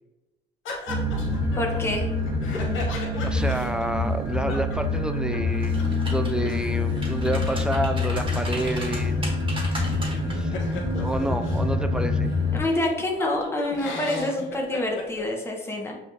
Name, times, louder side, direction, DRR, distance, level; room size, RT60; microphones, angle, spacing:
sound 1, 0.6-5.5 5.8-5.9 6.1-11.7 12.3-12.4 12.6-15.2, left 3 dB, 80° left, 1.0 m, -37 dB
sound 2, 0.9-12.6, left 2 dB, 55° right, 1.1 m, -26 dB
voice 1, 1.6-2.1 12.5-16.0, left 1 dB, 10° left, 0 dB, 0.9 m, -27 dB
voice 2, 3.2-9.2 10.3-10.6 11.0-12.3, right 1 dB, 5° right, 7 dB, 0.3 m, -29 dB
sound 3, 5.5-6.5 6.9-10.4 10.7-10.9, right 1 dB, 25° right, 1.3 m, -36 dB
6.3 x 2.4 x 2.8 m, 1.0 s
cardioid pair, 90°, 20 cm